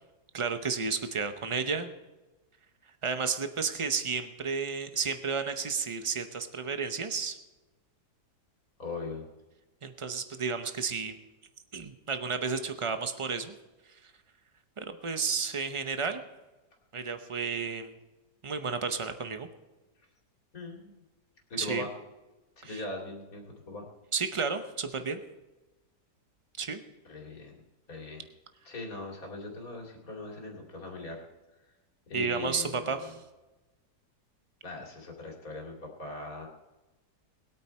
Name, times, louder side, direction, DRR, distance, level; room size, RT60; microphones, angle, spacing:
voice 1, 0.3-1.9 3.0-7.4 9.8-11.2 11.7-13.5 14.8-16.2 16.9-17.9 18.4-19.5 21.6-21.9 22.6-22.8 24.1-25.2 26.6-26.8 32.1-33.1, right 5 dB, 55° right, 8 dB, 0.3 m, -32 dB
voice 2, 8.8-9.3 20.5-20.9 21.5-21.9 22.6-23.9 27.0-27.6 27.9-28.3 28.6-31.2 32.1-33.2 34.6-36.5, left 2 dB, 55° left, 0 dB, 3.0 m, -40 dB
20.5 x 8.8 x 4.3 m, 1.1 s
omnidirectional pair, 1.8 m